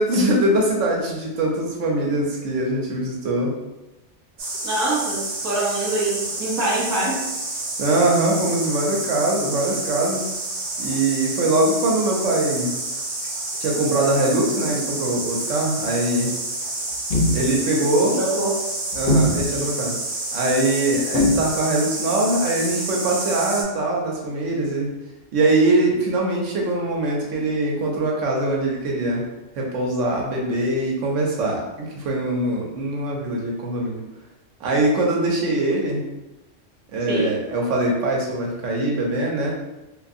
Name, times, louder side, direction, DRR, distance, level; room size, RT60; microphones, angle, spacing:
voice 1, 0.0-3.5 7.8-10.3 10.8-12.7 13.6-16.3 17.3-18.2 18.9-19.9 20.3-24.9 25.3-29.2 29.6-34.0 34.6-36.0 36.9-39.5, right 2 dB, 90° right, -1 dB, 1.0 m, -22 dB
sound 1, 4.4-23.6, right 2 dB, 60° right, 0.9 m, -29 dB
voice 2, 4.6-7.3 18.1-18.5 37.1-37.4, right 2 dB, 20° right, -5 dB, 0.5 m, -24 dB
sound 2, 16.9-17.4 18.9-19.6 21.1-21.5, left 1 dB, 60° left, 0.7 m, -20 dB
2.6 x 2.5 x 2.5 m, 0.99 s
omnidirectional pair, 1.2 m